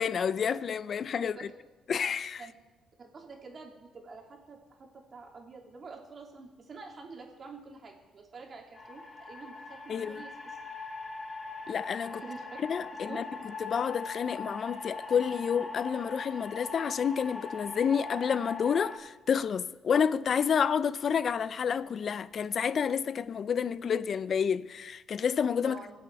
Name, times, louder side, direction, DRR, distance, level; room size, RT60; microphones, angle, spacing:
voice 1, 0.0-1.5 1.9-2.4 9.9-10.2 11.7-12.2 12.7-13.2 13.6-25.8, left 7 dB, 55° left, 0.4 m, -29 dB
voice 2, 3.0-10.6 12.2-12.4 13.1-13.2 25.6-25.9, right 4 dB, 45° right, 2.9 m, -47 dB
sound 1, 8.7-19.0, left 3 dB, 30° left, 2.2 m, -41 dB
21.0 x 7.7 x 4.7 m
cardioid pair, 75°, 0 cm